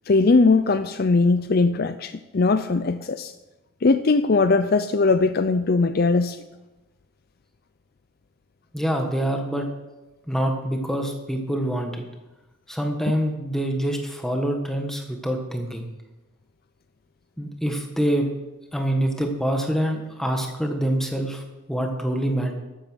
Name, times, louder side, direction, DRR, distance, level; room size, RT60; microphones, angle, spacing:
voice 1, 0.1-3.3 3.8-6.4, left 3 dB, 45° left, 11 dB, 0.4 m, -20 dB
voice 2, 8.7-9.7 10.3-12.0 12.7-15.9 17.4-18.3 18.7-21.4 21.7-22.6, right 1 dB, ahead, 3 dB, 1.4 m, -25 dB
13.0 x 9.1 x 6.3 m, 1.1 s
head